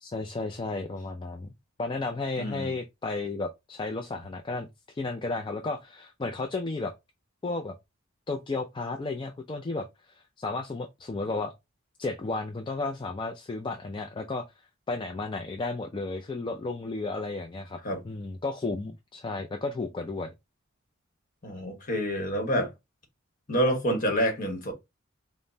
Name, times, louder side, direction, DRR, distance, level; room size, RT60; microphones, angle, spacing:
voice 1, 0.0-1.5 1.8-4.7 4.9-6.9 7.4-7.8 8.3-11.5 12.0-14.4 14.9-17.8 18.0-20.3, left 3 dB, 25° left, 0.3 m, -33 dB
voice 2, 2.4-2.7 17.8-18.0 21.4-22.7 23.5-24.7, equal, 40° left, 1.2 m, -27 dB
5.2 x 2.1 x 2.6 m
head